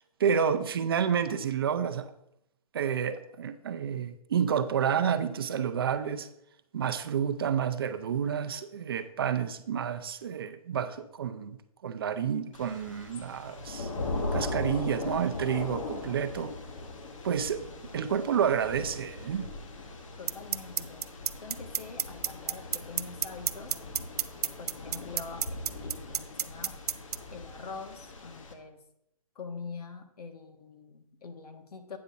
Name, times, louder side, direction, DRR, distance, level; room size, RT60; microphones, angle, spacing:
voice 1, 0.2-2.1 2.7-6.3 6.7-13.9 14.3-16.5 17.2-17.6 17.9-19.5, right 8 dB, 40° right, 10 dB, 0.5 m, -29 dB
Thunder / Rain, 12.5-28.5, left 2 dB, 60° left, 1.3 m, -39 dB
voice 2, 20.2-21.1 21.4-23.8 24.6-26.8 27.3-28.8 29.3-32.0, left 4 dB, 85° left, 6 dB, 1.4 m, -44 dB
sound 1, 20.3-27.2, right 9 dB, 90° right, 0.5 m, -28 dB
8.6 x 3.9 x 6.8 m, 0.78 s
hypercardioid pair, 170°, 19 cm